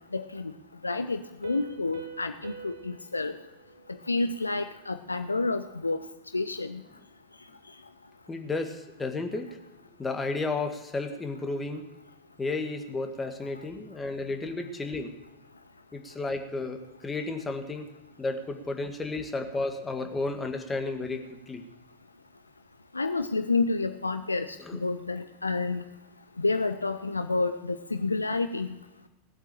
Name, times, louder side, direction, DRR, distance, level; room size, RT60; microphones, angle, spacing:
voice 1, 0.1-0.5 0.8-3.3 4.1-6.0 6.3-6.8 22.9-25.8 26.4-28.7, left 3 dB, 80° left, 9 dB, 0.5 m, -29 dB
Piano, 1.4-4.9, right 6 dB, 65° right, 1.7 m, -47 dB
voice 2, 8.3-9.6 10.0-11.8 12.4-15.1 15.9-17.9 18.2-21.6 24.6-24.8, left 3 dB, 15° left, 5 dB, 1.9 m, -33 dB
18.0 x 8.2 x 7.7 m, 0.98 s
figure-of-eight pair, 85°, 0 cm